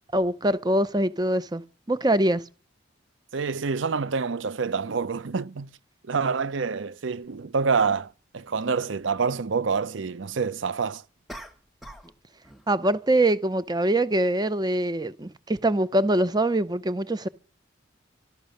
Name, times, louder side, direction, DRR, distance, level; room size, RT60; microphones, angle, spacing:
voice 1, 0.1-1.6 1.9-2.4 12.7-17.3, right 1 dB, 20° right, 0.7 m, -23 dB
voice 2, 3.3-5.7 6.1-11.0, right 5 dB, 75° right, 0.6 m, -27 dB
sound 1, 7.2-7.3 11.3-12.2 12.4-12.8, equal, ahead, 1.2 m, -43 dB
13.0 x 13.0 x 6.5 m
head